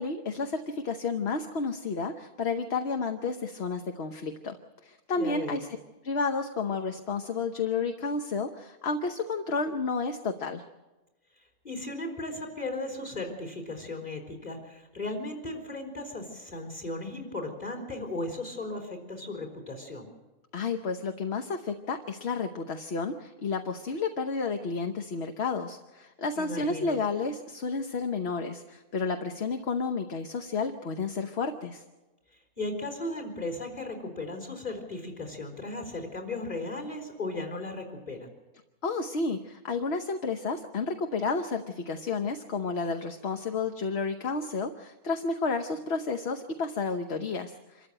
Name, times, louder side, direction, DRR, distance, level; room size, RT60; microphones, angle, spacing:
voice 1, 0.0-4.6 4.8-5.7 6.0-10.6 20.5-31.8 38.8-47.9, left 4 dB, 50° left, 6 dB, 1.1 m, -31 dB
voice 2, 5.1-5.6 11.4-20.1 26.4-27.0 32.3-38.3, left 2 dB, 25° left, 3 dB, 4.2 m, -36 dB
26.0 x 14.0 x 8.9 m, 1.1 s
omnidirectional pair, 1.6 m